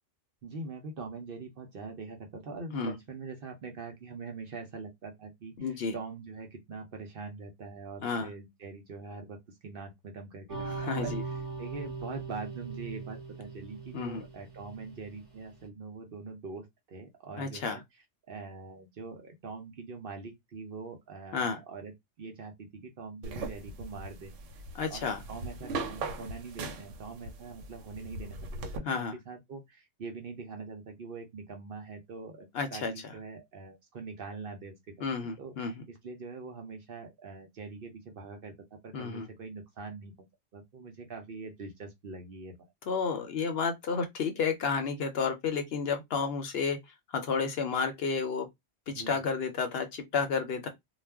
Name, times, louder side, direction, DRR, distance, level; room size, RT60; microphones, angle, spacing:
voice 1, 0.4-11.1 11.6-17.8 18.3-21.9 22.2-24.3 24.9-38.5 38.8-40.1 40.5-42.6 48.9-49.2, right 4 dB, 55° right, 0.7 m, -43 dB
voice 2, 5.6-5.9 8.0-8.3 10.6-11.2 13.9-14.2 17.4-17.8 21.3-21.6 24.7-25.2 28.9-29.1 32.5-33.1 35.0-35.8 38.9-39.3 42.9-48.5 48.9-50.7, left 5 dB, 65° left, 0.7 m, -31 dB
sound 1, 10.5-15.3, right 4 dB, 30° right, 1.0 m, -40 dB
sound 2, 23.2-28.8, right 3 dB, 85° right, 1.0 m, -40 dB
2.4 x 2.1 x 3.3 m
omnidirectional pair, 1.3 m